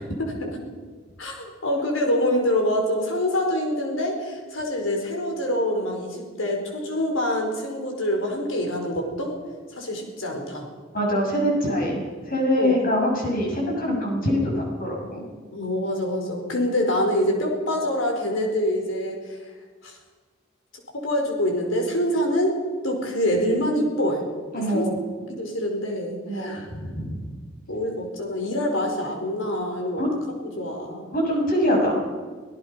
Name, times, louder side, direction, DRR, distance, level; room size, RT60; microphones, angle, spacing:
voice 1, 0.1-0.7 1.2-9.4 9.7-10.7 12.6-12.8 15.5-19.5 19.8-20.0 20.9-22.6 22.8-24.3 24.5-24.9 25.3-26.7 27.7-30.1 30.4-31.1, left 1 dB, 75° left, 2 dB, 4.8 m, -25 dB
voice 2, 10.9-15.2 24.5-24.9 26.2-27.2 30.0-30.1 31.1-31.9, equal, 45° left, 0 dB, 6.9 m, -24 dB
25.5 x 17.5 x 5.9 m, 1.5 s
head